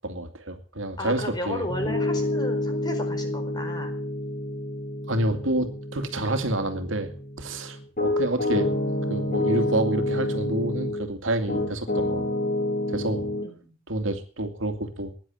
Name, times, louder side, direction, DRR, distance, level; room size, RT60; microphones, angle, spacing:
voice 1, 0.0-1.7 5.1-7.1 7.4-8.7 9.1-12.2 12.9-13.3 13.9-15.1, right 1 dB, 85° right, 7 dB, 2.4 m, -28 dB
voice 2, 1.0-3.9 13.4-13.7, left 1 dB, 20° left, 5 dB, 4.5 m, -34 dB
Piano, 1.7-11.0 11.5-13.5, left 1 dB, 45° left, 8.0 m, -28 dB
16.5 x 10.5 x 7.7 m, 0.41 s
head